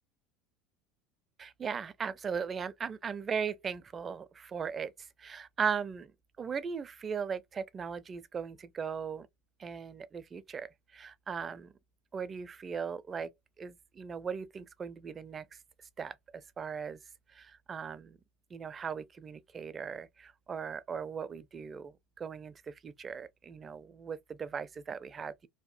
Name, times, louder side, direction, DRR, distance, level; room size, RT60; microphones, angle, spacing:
voice 1, 1.4-6.1 6.4-9.3 9.6-11.7 12.1-13.3 13.6-15.6 16.0-17.0 17.3-18.2 18.5-25.5, right 6 dB, 30° right, 0.4 m, -38 dB
2.7 x 2.0 x 2.4 m
hypercardioid pair, 90°, 0 cm